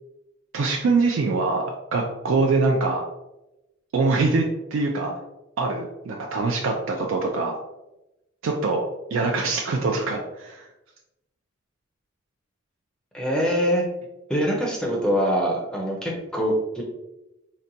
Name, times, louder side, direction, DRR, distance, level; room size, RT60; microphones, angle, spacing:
voice 1, 0.5-3.1 3.9-5.1 5.6-7.6 8.4-8.8 9.1-10.6, right 3 dB, 80° right, 0 dB, 0.4 m, -23 dB
voice 2, 13.1-13.8 14.3-16.8, equal, 5° left, -2 dB, 0.5 m, -24 dB
3.8 x 2.2 x 2.6 m, 0.95 s
head